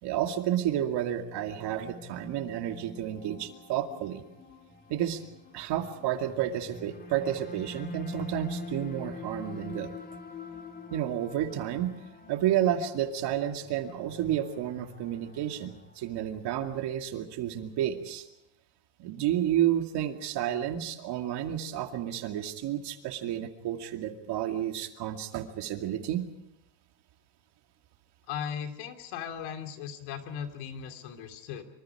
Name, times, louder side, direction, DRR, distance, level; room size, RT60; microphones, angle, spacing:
voice 1, 0.0-4.2 4.9-5.2 5.5-9.9 10.9-11.9 12.3-18.3 19.0-26.3, right 11 dB, 55° right, 5 dB, 2.5 m, -31 dB
sound 1, 1.2-16.5, left 2 dB, 20° left, 1.9 m, -45 dB
voice 2, 28.3-31.6, left 8 dB, 85° left, 7 dB, 3.2 m, -37 dB
25.5 x 25.0 x 4.9 m, 0.86 s
cardioid pair, 155°, 47 cm